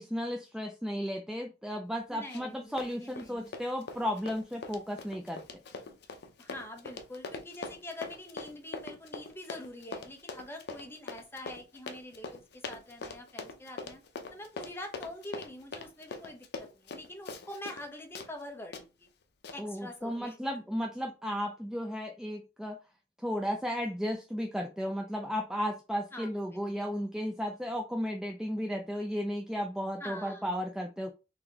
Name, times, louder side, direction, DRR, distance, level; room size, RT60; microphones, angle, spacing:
voice 1, 0.0-5.4 19.6-22.8 23.2-31.1, equal, 5° right, 3 dB, 0.3 m, -34 dB
voice 2, 2.1-2.6 2.8-3.4 6.4-14.0 14.3-19.1 19.5-20.6 26.1-26.4 30.0-30.5, left 1 dB, 15° left, 3 dB, 0.8 m, -45 dB
Run, 2.3-2.5 2.8-17.9 18.1-18.3 18.7-18.8 19.4-19.6, left 3 dB, 60° left, 0.6 m, -42 dB
3.9 x 2.9 x 2.8 m, 0.29 s
head